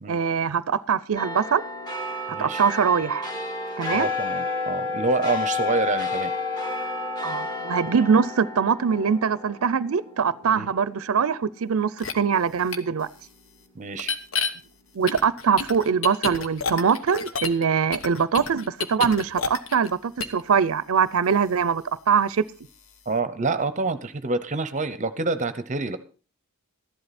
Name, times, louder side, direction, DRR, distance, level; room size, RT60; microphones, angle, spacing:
voice 1, 0.1-1.6 2.4-3.3 3.8-4.1 7.2-13.1 14.9-22.4, right 6 dB, 75° right, 0.5 m, -23 dB
sound 1, 1.2-11.9 12.3-12.4, left 3 dB, 20° left, 2.1 m, -31 dB
voice 2, 2.3-2.6 3.9-6.3 10.5-10.7 13.8-14.1 23.1-26.0, right 3 dB, 35° right, 0.7 m, -27 dB
sound 2, 12.0-12.1 12.7-12.8 14.0-14.5 15.1-17.6 17.9-19.9 20.2-20.4, left 5 dB, 70° left, 1.2 m, -29 dB
14.0 x 11.5 x 4.2 m
head